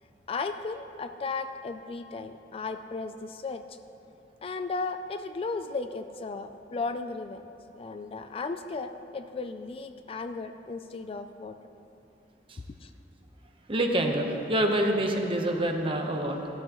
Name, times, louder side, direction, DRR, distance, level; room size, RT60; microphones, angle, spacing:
voice 1, 0.3-3.8 4.4-7.5 7.8-11.6 12.8-12.9, left 4 dB, 35° left, 8 dB, 0.4 m, -35 dB
voice 2, 13.7-16.5, right 1 dB, 30° right, 3 dB, 1.0 m, -26 dB
16.0 x 12.0 x 3.0 m, 2.9 s
head